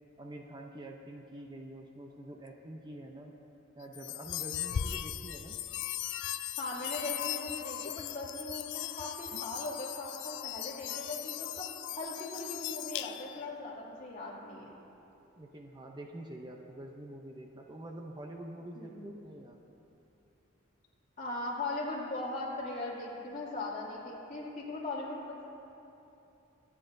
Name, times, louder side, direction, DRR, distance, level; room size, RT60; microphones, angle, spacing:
voice 1, 0.2-3.3 3.8-5.6 15.4-19.6, right 1 dB, 20° right, 1 dB, 0.6 m, -46 dB
sound 1, 3.9-13.5, left 11 dB, 60° left, 0.4 m, -38 dB
voice 2, 6.6-11.7 12.0-14.7 18.8-19.1 21.2-25.5, left 2 dB, 40° left, -5 dB, 2.6 m, -39 dB
25.0 x 9.7 x 2.6 m, 3.0 s
head